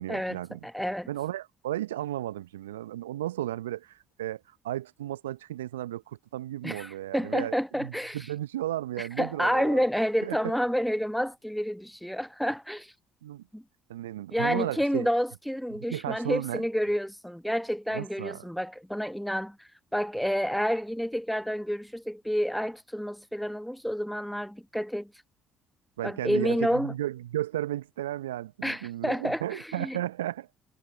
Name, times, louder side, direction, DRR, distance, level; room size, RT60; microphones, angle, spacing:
voice 1, 0.0-0.6 1.1-9.9 10.2-10.6 13.2-13.4 13.9-15.1 15.7-16.6 17.9-18.4 26.0-30.5, right 13 dB, 80° right, 0.8 m, -34 dB
voice 2, 0.6-1.1 6.6-8.3 9.0-12.9 13.5-13.6 14.3-25.1 26.0-26.9 28.6-30.0, equal, ahead, 1.2 m, -29 dB
figure-of-eight pair, 50°, 0 cm